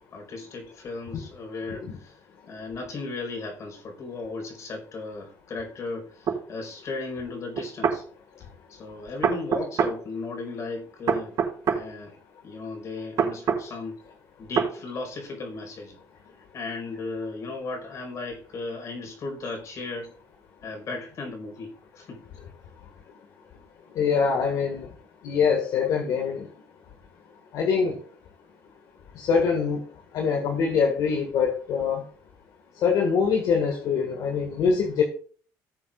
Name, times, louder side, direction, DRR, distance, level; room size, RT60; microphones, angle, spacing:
voice 1, 0.0-2.2 2.5-8.0 8.4-11.4 11.7-12.1 12.4-14.0 14.4-16.0 16.5-20.1 20.6-22.2, left 3 dB, 45° left, 3 dB, 5.0 m, -36 dB
sound 1, 6.3-6.4 7.6-8.0 9.2-10.0 11.1-11.8 13.2-13.6 14.6-14.7, right 7 dB, 55° right, 4.3 m, -24 dB
voice 2, 24.0-24.9 25.2-26.5 27.5-27.9 29.2-29.8 30.1-32.0 32.8-35.0, left 6 dB, 70° left, 3 dB, 2.0 m, -24 dB
18.0 x 7.4 x 2.6 m, 0.43 s
cardioid pair, 120°, 7 cm